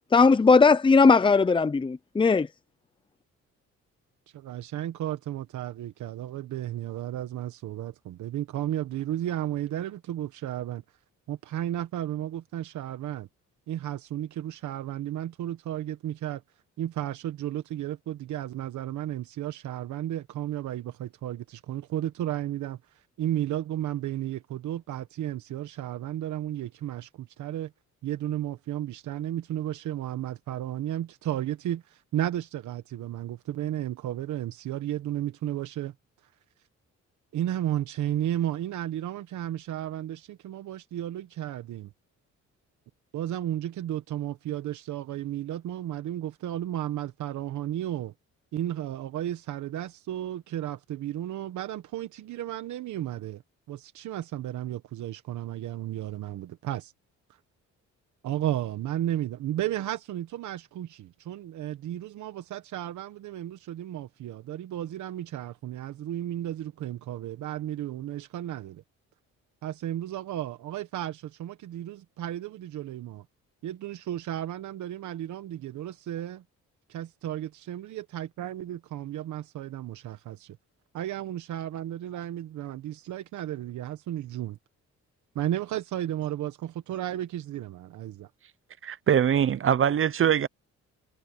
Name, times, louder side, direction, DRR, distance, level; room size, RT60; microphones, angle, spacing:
voice 1, 0.1-2.5, left 4 dB, 15° left, 0.6 m, -18 dB
voice 2, 4.3-10.8 11.3-13.3 13.7-16.4 16.8-27.7 28.0-35.9 36.2-36.3 37.3-41.9 43.1-48.1 48.5-53.4 53.7-56.9 57.3-57.4 58.2-68.8 69.6-73.2 73.6-76.4 76.9-80.6 80.9-84.6 85.3-88.3, right 12 dB, 75° right, 1.2 m, -33 dB
voice 3, 88.8-90.5, right 9 dB, 45° right, 0.7 m, -23 dB
cardioid pair, 90°, 30 cm